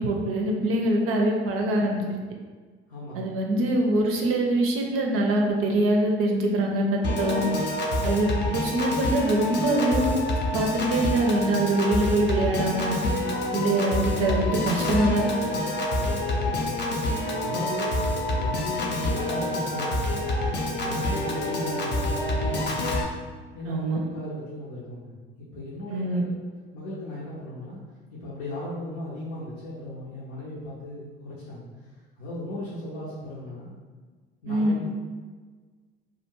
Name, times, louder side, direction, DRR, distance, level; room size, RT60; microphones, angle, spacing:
voice 1, 0.0-2.2 3.1-7.4 8.0-10.2 10.5-13.0 13.5-15.3 23.7-24.0 25.9-26.2 34.5-34.7, right 1 dB, 45° right, 1 dB, 0.5 m, -24 dB
voice 2, 2.9-3.4 16.3-16.8 17.4-20.2 20.8-22.8 23.5-26.4 26.7-27.8 28.1-33.7 34.4-34.9, left 1 dB, 70° left, -8 dB, 0.7 m, -37 dB
Piano / Organ, 7.0-23.0, left 1 dB, 35° left, 0.5 m, -27 dB
2.4 x 2.1 x 3.0 m, 1.4 s
hypercardioid pair, 60°, 31 cm